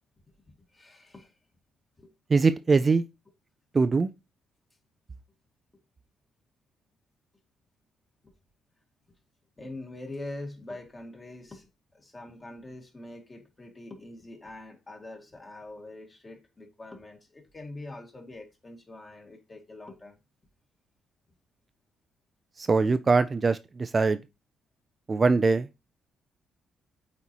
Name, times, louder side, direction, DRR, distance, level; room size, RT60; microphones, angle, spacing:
voice 1, 0.5-1.4 2.0-2.1 8.2-8.4 9.6-20.2, left 2 dB, 25° left, 2.0 m, -44 dB
voice 2, 2.3-3.1 3.7-4.1 22.6-24.2 25.1-25.7, right 4 dB, 30° right, 0.4 m, -22 dB
7.9 x 4.2 x 3.0 m
cardioid pair, 90°, 0 cm